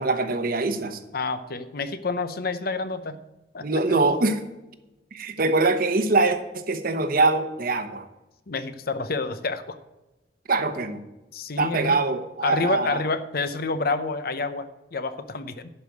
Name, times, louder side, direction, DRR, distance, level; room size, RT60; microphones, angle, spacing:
voice 1, 0.0-1.0 3.6-4.4 5.1-8.0 10.5-11.0 11.6-13.0, right 3 dB, 55° right, 9 dB, 1.0 m, -23 dB
voice 2, 1.1-3.2 3.5-4.0 8.5-9.8 11.3-12.0 12.4-15.7, left 3 dB, 55° left, 12 dB, 0.7 m, -28 dB
11.5 x 5.2 x 7.7 m, 1.0 s
head